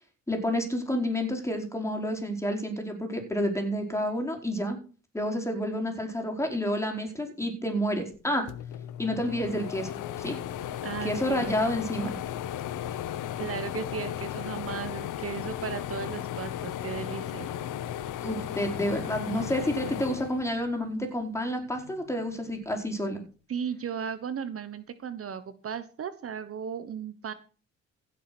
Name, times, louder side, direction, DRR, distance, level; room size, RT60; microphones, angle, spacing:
voice 1, 0.3-4.8 5.1-8.5 9.0-9.9 10.2-10.4 11.0-12.2 18.2-23.2, equal, 10° left, 3 dB, 4.7 m, -29 dB
sound 1, 8.1-8.2 8.5-21.1 21.5-22.6, left 11 dB, 90° left, 1.1 m, -36 dB
voice 2, 10.8-11.5 13.4-17.5 23.5-27.3, right 7 dB, 50° right, 12 dB, 1.2 m, -36 dB
16.0 x 7.0 x 6.1 m, 0.38 s
cardioid pair, 90°, 30 cm